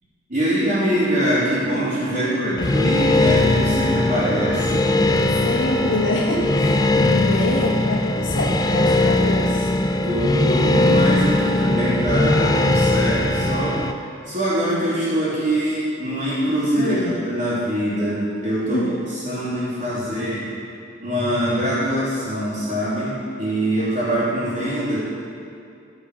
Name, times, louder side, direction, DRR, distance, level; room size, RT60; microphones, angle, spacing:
voice 1, 0.3-4.9 10.0-13.8 14.2-20.5 21.0-25.0, equal, 40° right, -13 dB, 3.2 m, -23 dB
voice 2, 2.1-2.7 5.4-9.7 16.7-17.2 18.7-18.9, left 1 dB, 75° left, -7 dB, 1.6 m, -25 dB
sound 1, 2.6-13.9, left 2 dB, 20° left, 0.5 m, -19 dB
14.5 x 5.4 x 6.5 m, 2.5 s
head